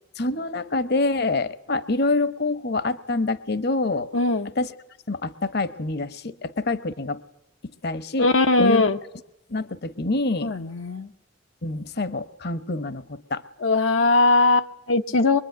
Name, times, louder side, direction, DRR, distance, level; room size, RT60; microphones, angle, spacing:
voice 1, 0.2-4.1 4.5-4.7 5.1-7.2 7.8-8.3 8.6-8.9 9.5-10.5 11.6-13.4, left 2 dB, 55° left, 15 dB, 1.0 m, -26 dB
voice 2, 4.1-4.5 8.2-9.0 10.4-11.1 13.6-15.4, left 3 dB, 90° left, 6 dB, 1.0 m, -20 dB
24.0 x 22.5 x 9.3 m, 0.88 s
head